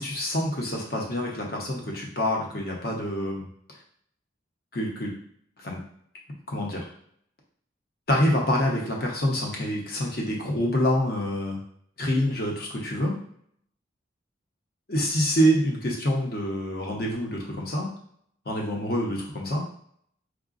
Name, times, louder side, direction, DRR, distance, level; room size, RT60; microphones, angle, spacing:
voice 1, 0.0-3.5 4.7-5.1 5.6-5.8 6.5-6.9 8.1-11.6 12.0-13.1 14.9-17.9 18.5-19.6, equal, 55° left, -1 dB, 0.8 m, -26 dB
4.8 x 2.2 x 2.4 m, 0.65 s
head